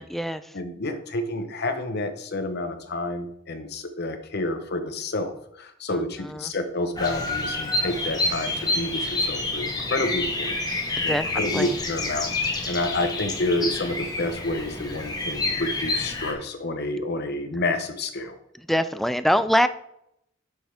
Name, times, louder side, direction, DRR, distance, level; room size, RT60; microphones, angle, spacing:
voice 1, 0.0-0.5 5.9-6.5 11.1-11.8 18.6-19.7, equal, ahead, 12 dB, 0.3 m, -25 dB
voice 2, 0.5-10.5 11.0-18.4, left 2 dB, 55° left, 7 dB, 1.0 m, -29 dB
Bird vocalization bird call bird song, 7.0-16.3, left 2 dB, 20° left, 1.2 m, -28 dB
8.0 x 6.4 x 3.5 m, 0.76 s
head